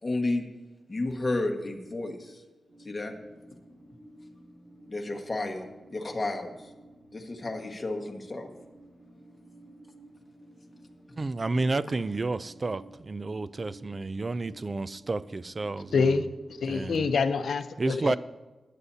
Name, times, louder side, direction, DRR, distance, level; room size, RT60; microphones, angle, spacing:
voice 1, 0.0-0.4 0.9-2.4 2.8-3.1 4.9-6.6 7.1-8.5, left 2 dB, 25° left, 2 dB, 1.5 m, -32 dB
sound 1, 2.7-16.5, right 1 dB, 15° right, 3.7 m, -53 dB
voice 2, 11.2-16.1 16.7-17.1 17.8-18.2, right 3 dB, 30° right, 16 dB, 0.3 m, -31 dB
voice 3, 15.9-18.2, left 5 dB, 80° left, 9 dB, 0.6 m, -26 dB
20.5 x 9.9 x 2.8 m, 1.2 s
wide cardioid pair, 140°, 0 cm